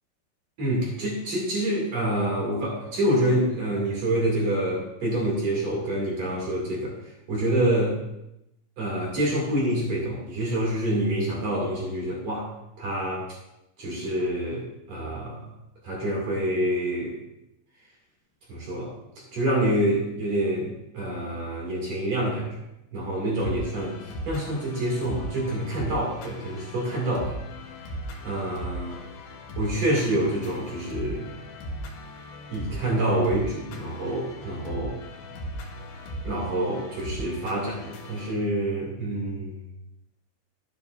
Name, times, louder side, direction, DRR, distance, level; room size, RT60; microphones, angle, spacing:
voice 1, 0.6-8.0 8.8-12.5 12.8-13.2 13.8-15.5 15.8-17.2 18.5-18.9 19.3-22.6 22.9-27.4 28.2-28.9 29.6-31.3 32.5-35.0 36.2-39.6, right 1 dB, 40° right, -3 dB, 3.0 m, -27 dB
sound 1, 23.4-38.3, equal, 70° left, 3.5 m, -38 dB
13.0 x 9.7 x 2.6 m, 0.86 s
omnidirectional pair, 5.6 m